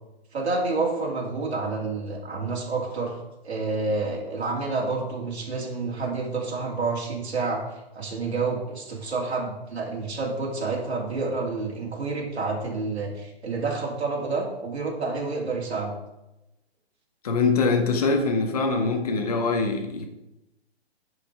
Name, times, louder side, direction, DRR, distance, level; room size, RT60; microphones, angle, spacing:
voice 1, 0.3-3.2 3.4-15.9, right 3 dB, 80° right, -3 dB, 2.8 m, -29 dB
voice 2, 17.2-20.1, left 4 dB, 35° left, 4 dB, 1.1 m, -23 dB
11.0 x 5.2 x 4.8 m, 0.93 s
hypercardioid pair, 175°, 32 cm